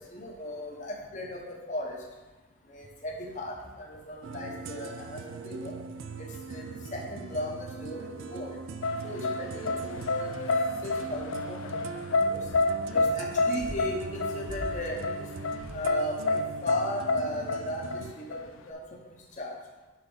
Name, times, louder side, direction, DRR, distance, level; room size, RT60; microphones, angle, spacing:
voice 1, 0.0-2.0 2.7-5.7 6.2-8.6 9.0-10.5 10.8-12.5 12.9-15.3 15.7-18.8 19.4-19.5, left 1 dB, 35° left, -1 dB, 1.0 m, -37 dB
sound 1, 4.2-18.1, right 4 dB, 70° right, 0.4 m, -41 dB
sound 2, 8.8-18.7, left 2 dB, 70° left, 0.4 m, -28 dB
6.0 x 4.1 x 5.4 m, 1.2 s
head